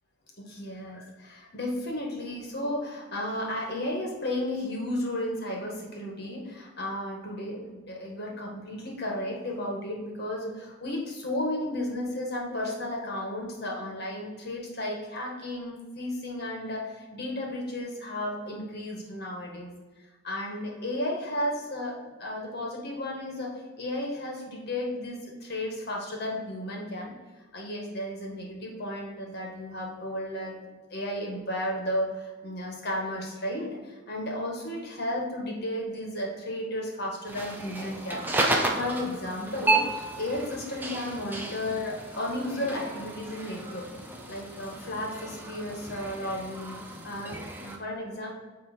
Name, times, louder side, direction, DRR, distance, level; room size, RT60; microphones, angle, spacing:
voice 1, 0.4-27.1 27.5-39.9 40.2-43.9 44.3-46.8 47.0-48.3, left 1 dB, 50° left, -2 dB, 1.6 m, -33 dB
sound 1, 37.3-47.8, right 2 dB, 10° right, 0.6 m, -32 dB
9.3 x 3.3 x 4.5 m, 1.3 s
head